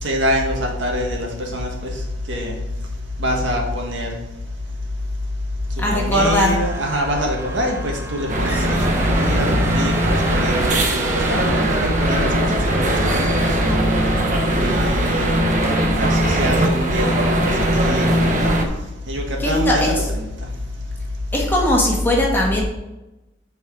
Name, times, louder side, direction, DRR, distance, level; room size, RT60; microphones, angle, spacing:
voice 1, 0.0-2.6 3.2-4.2 5.7-13.8 14.5-15.5 16.0-18.6 19.1-20.5, equal, 75° right, 0 dB, 1.7 m, -26 dB
voice 2, 5.8-6.6 8.5-8.8 19.4-20.0 21.3-22.6, left 1 dB, 10° left, -3 dB, 1.8 m, -19 dB
sound 1, 6.2-14.4 14.8-15.0 15.5-15.8, right 2 dB, 15° right, 0.6 m, -34 dB
sound 2, 8.3-18.6, right 1 dB, 40° right, 1.2 m, -19 dB
9.4 x 4.8 x 4.7 m, 1.0 s
head